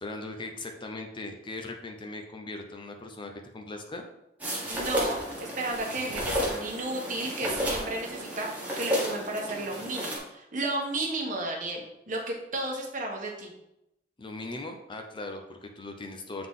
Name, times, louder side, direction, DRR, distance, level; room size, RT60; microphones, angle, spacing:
voice 1, 0.0-4.1 14.2-16.5, left 2 dB, 25° left, 4 dB, 0.6 m, -39 dB
sound 1, 4.4-10.2, equal, 10° right, 1.6 m, -32 dB
voice 2, 4.7-11.8 12.1-13.5, right 2 dB, 50° right, 0 dB, 1.3 m, -33 dB
7.7 x 3.9 x 3.7 m, 0.84 s
head